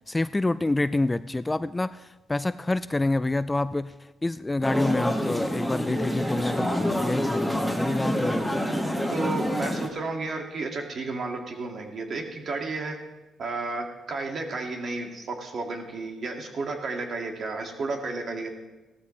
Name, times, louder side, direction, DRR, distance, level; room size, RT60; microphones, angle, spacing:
voice 1, 0.1-2.0 2.3-3.9 4.2-8.6, left 2 dB, 15° left, 14 dB, 0.3 m, -27 dB
sound 1, 4.6-9.9, equal, 5° right, 1.7 m, -27 dB
voice 2, 9.1-13.0 13.4-18.5, right 3 dB, 55° right, 2 dB, 2.1 m, -32 dB
16.5 x 13.5 x 3.2 m, 1.1 s
cardioid pair, 90°, 0 cm